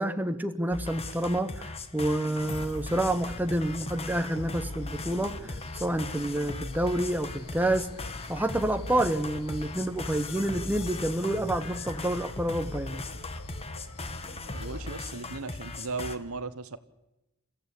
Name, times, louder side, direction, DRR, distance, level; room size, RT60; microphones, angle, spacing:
voice 1, 0.0-7.9 8.3-13.0, right 1 dB, 10° right, 8 dB, 0.9 m, -28 dB
sound 1, 0.7-16.2, left 3 dB, 25° left, 1.4 m, -39 dB
sound 2, 2.3-14.9, left 2 dB, 85° left, 1.9 m, -45 dB
voice 2, 14.5-16.8, right 3 dB, 70° right, 13 dB, 1.2 m, -36 dB
29.0 x 15.0 x 8.5 m, 0.97 s
head